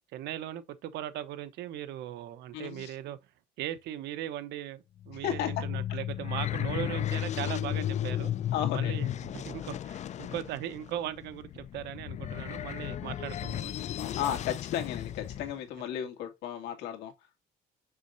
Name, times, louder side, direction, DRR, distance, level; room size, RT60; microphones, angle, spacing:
voice 1, 0.1-3.2 3.6-8.3 8.7-13.8, right 12 dB, 80° right, 1.1 m, -38 dB
voice 2, 2.5-3.0 5.2-5.6 8.5-9.0 10.0-10.1 14.2-17.1, left 10 dB, 85° left, 2.2 m, -34 dB
sound 1, 5.0-15.5, left 11 dB, 45° left, 0.4 m, -34 dB
6.5 x 6.2 x 2.7 m
cardioid pair, 110°, 17 cm